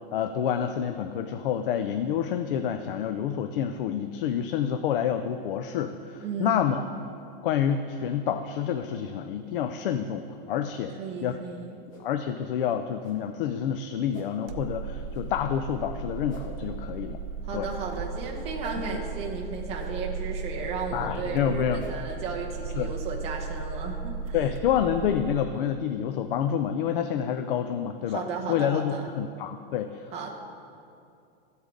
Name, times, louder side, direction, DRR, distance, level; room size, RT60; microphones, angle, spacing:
voice 1, 0.0-6.9 7.4-10.9 11.2-11.4 12.0-17.2 17.5-17.7 20.9-21.8 22.8-22.9 24.3-28.2 28.5-30.1, left 9 dB, 65° left, 9 dB, 0.5 m, -28 dB
voice 2, 6.2-6.7 11.0-11.7 17.4-24.4 28.1-29.1 30.1-30.3, right 4 dB, 20° right, 1 dB, 0.9 m, -34 dB
sound 1, 11.9-12.0 13.0-13.2 14.1-14.3 15.1-15.2 16.3-16.4 17.6-17.8 18.6-18.8 19.8-19.9 20.8-20.9 21.8-21.9, left 1 dB, 25° left, 2.1 m, -45 dB
sound 2, 14.5-25.4, right 5 dB, 70° right, 0.8 m, -36 dB
14.0 x 8.2 x 3.9 m, 2.5 s
supercardioid pair, 170°, 30 cm